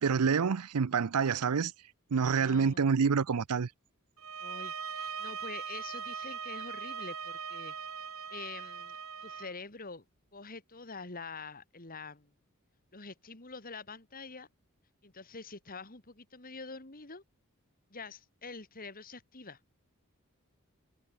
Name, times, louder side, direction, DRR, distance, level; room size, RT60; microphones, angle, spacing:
voice 1, 0.0-1.7 2.1-3.7, right 6 dB, 85° right, 0.6 m, -27 dB
voice 2, 2.1-2.8 4.4-7.7 8.3-10.0 10.3-12.3 12.9-14.5 15.0-17.2 17.9-19.6, left 4 dB, 40° left, 2.7 m, -46 dB
sound 1, 4.2-9.5, right 6 dB, 65° right, 3.5 m, -40 dB
head